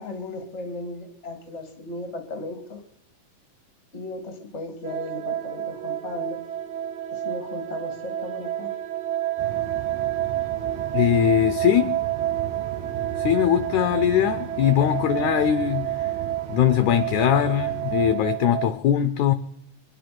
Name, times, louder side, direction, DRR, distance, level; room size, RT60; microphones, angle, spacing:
voice 1, 0.0-2.8 3.9-6.4 7.2-8.7, left 2 dB, 20° left, 2.4 m, -36 dB
sound 1, 4.8-18.7, right 12 dB, 70° right, 1.2 m, -29 dB
sound 2, 9.4-18.2, right 11 dB, 90° right, 2.6 m, -38 dB
voice 2, 10.9-12.0 13.2-16.1 16.5-19.3, left 10 dB, 75° left, 1.9 m, -21 dB
24.0 x 9.9 x 6.0 m
omnidirectional pair, 4.0 m